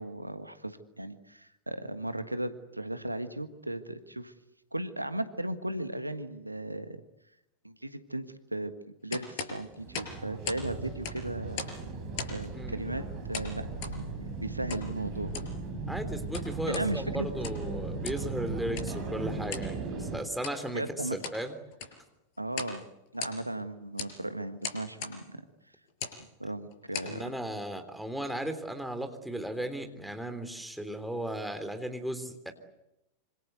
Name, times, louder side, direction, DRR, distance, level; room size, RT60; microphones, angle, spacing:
voice 1, 0.0-4.3 4.7-7.0 7.6-8.7 9.0-11.7 12.3-14.1 14.4-15.3 16.7-17.3 20.7-21.2 22.4-22.8 23.1-25.4 26.4-27.2, right 1 dB, 85° right, 10 dB, 1.6 m, -36 dB
sound 1, 9.1-10.7 10.9-11.8 12.1-12.5 13.3-14.0 14.7-14.9 15.2-15.6 16.1-16.9 17.3-17.7 18.0-18.3 18.7-18.9 19.5-19.7 20.3-20.6 21.0-21.4 21.7-22.0 22.5-22.8 23.1-23.6 24.0-24.2 24.6-25.2 25.9-26.2 26.7-27.2, left 6 dB, 45° left, 5.9 m, -38 dB
sound 2, 9.6-20.2, right 3 dB, 40° right, 8.0 m, -37 dB
voice 2, 15.9-20.8 21.1-21.5 27.0-32.5, right 1 dB, ahead, 6 dB, 3.4 m, -36 dB
26.5 x 26.0 x 8.1 m, 0.89 s
figure-of-eight pair, 90°, 0 cm